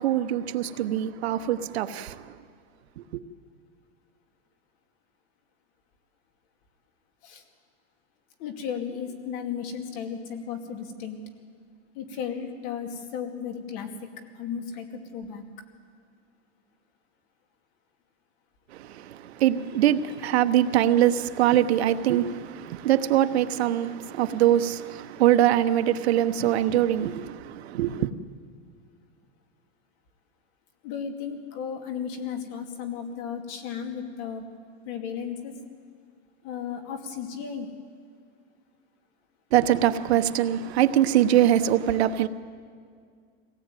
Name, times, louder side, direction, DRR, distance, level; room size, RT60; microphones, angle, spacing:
voice 1, 0.0-2.4 3.0-3.2 18.7-28.1 39.5-42.3, right 12 dB, 70° right, 1.1 m, -23 dB
voice 2, 8.4-11.2 11.9-13.9 14.4-15.4 30.8-34.4 34.9-35.5 36.4-37.7, left 7 dB, 40° left, 2.5 m, -34 dB
24.0 x 18.0 x 9.2 m
supercardioid pair, 165°, 33 cm